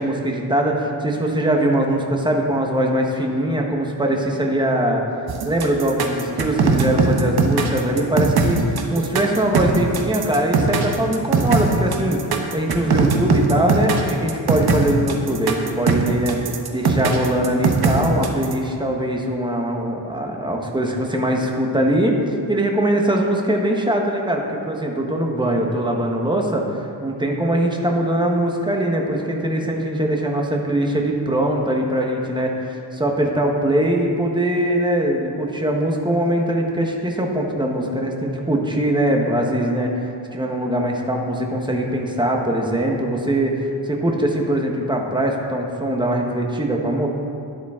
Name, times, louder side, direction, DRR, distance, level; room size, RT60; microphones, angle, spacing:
voice 1, 0.0-5.0 5.4-12.2 12.5-16.4 16.7-47.1, right 1 dB, 10° right, 1 dB, 1.1 m, -22 dB
sound 1, 5.3-18.5, right 4 dB, 50° right, 1.1 m, -19 dB
13.0 x 10.5 x 3.7 m, 2.5 s
wide cardioid pair, 160°, 46 cm